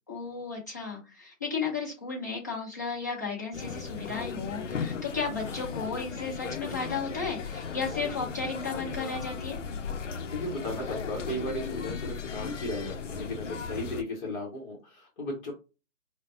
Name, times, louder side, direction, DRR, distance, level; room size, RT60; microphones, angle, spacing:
voice 1, 0.1-9.6, left 5 dB, 15° left, -4 dB, 0.4 m, -34 dB
sound 1, 3.5-14.0, left 5 dB, 65° left, 0.6 m, -36 dB
voice 2, 10.3-15.5, left 1 dB, 35° left, -1 dB, 1.0 m, -35 dB
5.0 x 2.1 x 2.6 m, 0.30 s
figure-of-eight pair, 145°, 41 cm